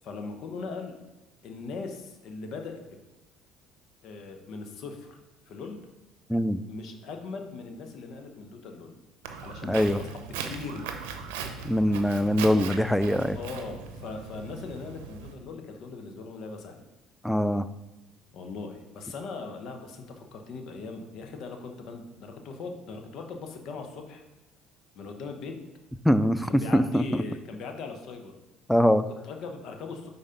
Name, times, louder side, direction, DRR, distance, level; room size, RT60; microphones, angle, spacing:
voice 1, 0.0-1.0 1.4-2.8 4.0-5.2 5.5-5.8 6.7-9.0 9.4-10.9 13.3-16.8 18.3-24.2 24.9-25.6 26.4-28.4 29.2-30.1, left 4 dB, 65° left, 4 dB, 1.0 m, -39 dB
voice 2, 6.3-6.6 9.6-10.0 11.6-13.4 17.2-17.6 26.0-27.0 28.7-29.0, equal, 5° left, 13 dB, 0.4 m, -23 dB
Walk footsteps, 9.2-15.3, right 6 dB, 85° right, 0.6 m, -39 dB
5.0 x 4.0 x 5.7 m, 0.99 s
supercardioid pair, 75°, 0 cm